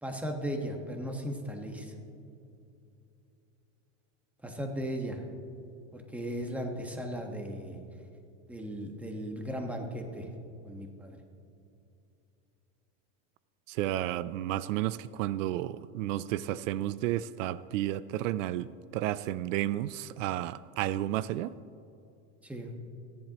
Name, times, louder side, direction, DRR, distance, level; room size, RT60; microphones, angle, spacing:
voice 1, 0.0-1.9 4.4-5.2 5.9-7.8 8.5-10.3 10.6-11.2 22.4-22.7, equal, 5° right, 2 dB, 1.4 m, -36 dB
voice 2, 13.7-18.7 18.9-21.5, right 13 dB, 85° right, 17 dB, 0.5 m, -32 dB
29.0 x 10.5 x 3.0 m, 2.6 s
supercardioid pair, 140°, 37 cm